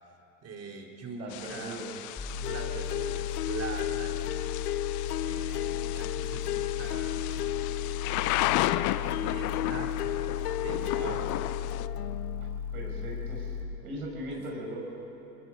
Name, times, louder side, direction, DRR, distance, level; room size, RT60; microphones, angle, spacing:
voice 1, 0.4-1.8 2.4-4.5 5.2-7.6 8.4-10.0 10.6-11.3 14.3-14.4, right 4 dB, 35° right, 2 dB, 3.3 m, -42 dB
voice 2, 1.2-2.1 10.9-11.2 12.7-13.5 13.8-14.8, right 1 dB, 80° right, -1 dB, 5.8 m, -39 dB
Thunder / Rain, 1.3-11.9, left 17 dB, 45° left, 0.6 m, -34 dB
sound 1, 2.2-13.6, left 6 dB, 20° left, 4.0 m, -36 dB
sound 2, 2.4-12.6, left 14 dB, 80° left, 0.7 m, -35 dB
24.0 x 22.0 x 5.4 m, 3.0 s
hypercardioid pair, 85°, 44 cm